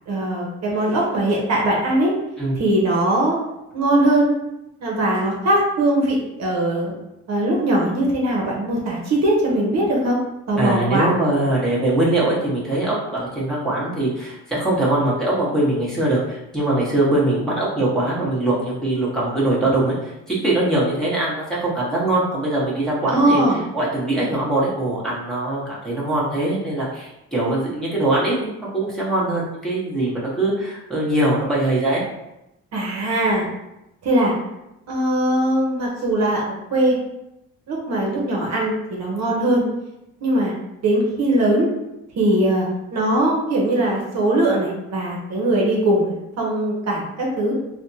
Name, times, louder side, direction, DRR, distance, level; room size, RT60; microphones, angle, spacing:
voice 1, 0.1-2.1 2.6-3.4 3.7-4.3 4.8-6.9 7.3-10.2 10.5-11.1 23.1-23.6 32.7-33.5 34.0-34.3 34.9-37.0 37.7-39.6 40.2-40.5 40.8-41.7 42.2-47.5, right 1 dB, 60° right, -3 dB, 0.8 m, -20 dB
voice 2, 10.6-23.4 23.7-32.0, right 1 dB, ahead, -8 dB, 1.2 m, -22 dB
3.3 x 2.1 x 2.7 m, 0.89 s
cardioid pair, 90°, 30 cm